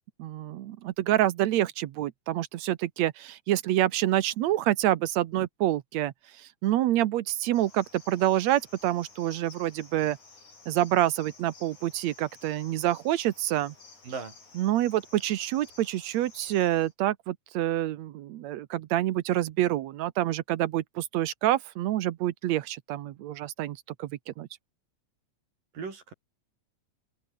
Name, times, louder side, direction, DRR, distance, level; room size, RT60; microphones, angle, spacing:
voice 1, 0.2-10.2 10.7-13.7 14.6-24.5, right 13 dB, 70° right, 1.9 m, -27 dB
Cricket, 7.5-16.9, left 4 dB, 60° left, 8.5 m, -53 dB
voice 2, 14.0-14.4 25.7-26.1, right 5 dB, 90° right, 6.8 m, -37 dB
open air
omnidirectional pair, 3.8 m